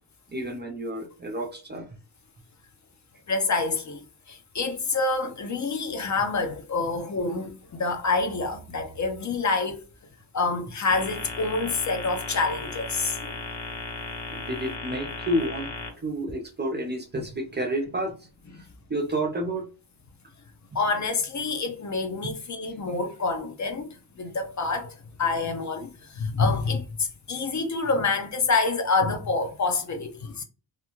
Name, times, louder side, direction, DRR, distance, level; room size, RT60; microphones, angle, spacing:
voice 1, 0.3-1.9 14.3-15.7 16.0-18.2 18.9-19.7, right 1 dB, 25° right, 0.5 m, -30 dB
voice 2, 3.3-9.8 10.3-13.3 20.7-24.9 25.2-30.4, left 3 dB, 40° left, 0.5 m, -27 dB
sound 1, 10.9-15.9, left 3 dB, 70° left, 1.0 m, -36 dB
2.4 x 2.2 x 3.0 m
cardioid pair, 90°, 44 cm